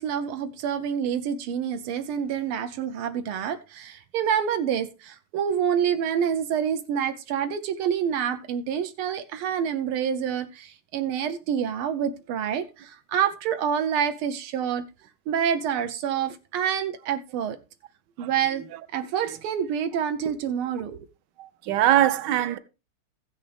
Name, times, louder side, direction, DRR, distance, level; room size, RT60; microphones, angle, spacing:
voice 1, 0.0-14.8 15.3-17.6 18.2-18.6 18.9-21.0, right 8 dB, 85° right, 1.6 m, -27 dB
voice 2, 21.4-22.6, right 12 dB, 70° right, 1.1 m, -22 dB
15.0 x 6.5 x 3.3 m
omnidirectional pair, 2.3 m